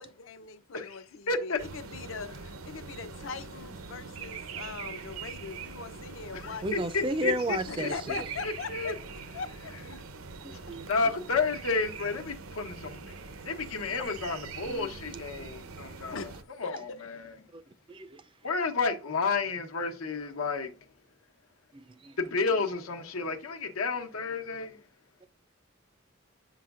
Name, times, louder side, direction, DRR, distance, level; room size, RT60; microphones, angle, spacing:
voice 1, 0.0-2.3 2.6-6.9 7.7-9.0 9.3-9.7 14.0-14.1 16.1-16.3 16.6-17.2, left 4 dB, 65° left, 0.6 m, -41 dB
voice 2, 0.7-1.6 6.3-8.9 10.9-13.0 13.4-16.3 16.6-16.8 17.2-17.3 18.4-20.7 22.2-24.8, left 4 dB, 90° left, 1.0 m, -31 dB
sound 1, 1.6-16.4, right 5 dB, 85° right, 0.7 m, -43 dB
voice 3, 6.6-7.9 10.4-10.9 14.7-14.9 17.5-17.6 17.9-18.1 21.7-22.2, right 1 dB, 25° right, 0.3 m, -33 dB
8.0 x 5.7 x 2.4 m
head